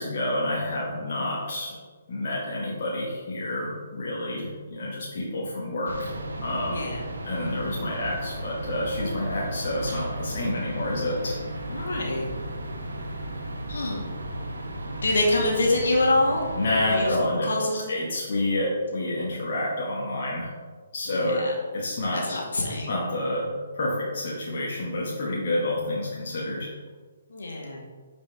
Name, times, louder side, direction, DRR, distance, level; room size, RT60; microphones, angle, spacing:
voice 1, 0.0-1.8 2.1-6.8 7.2-11.4 16.6-20.5 20.9-21.4 21.7-22.4 22.7-26.7, left 1 dB, 45° left, -5 dB, 1.9 m, -29 dB
sound 1, 5.9-17.2, right 1 dB, 65° right, 1.3 m, -35 dB
voice 2, 6.7-7.0 11.7-12.3 13.7-14.0 15.0-16.4 16.9-17.1 17.5-17.9 21.1-21.5 22.1-22.9 27.3-27.8, left 2 dB, 60° left, -2 dB, 2.3 m, -25 dB
11.5 x 5.2 x 3.7 m, 1.4 s
figure-of-eight pair, 135°, 0 cm